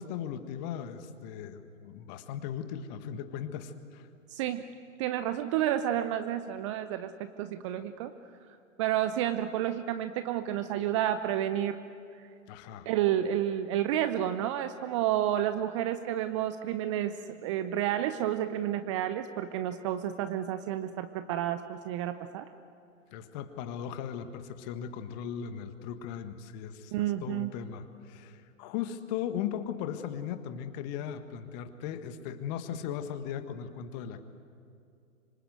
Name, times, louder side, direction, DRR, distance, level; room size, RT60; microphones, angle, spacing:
voice 1, 0.0-4.1 12.5-12.9 23.1-34.2, left 9 dB, 30° left, 9 dB, 1.6 m, -38 dB
voice 2, 4.3-4.6 5.0-8.1 8.8-11.8 12.9-22.5 26.9-27.5, right 11 dB, 25° right, 11 dB, 0.6 m, -30 dB
26.0 x 24.5 x 7.9 m, 2.5 s
figure-of-eight pair, 120°, 40 cm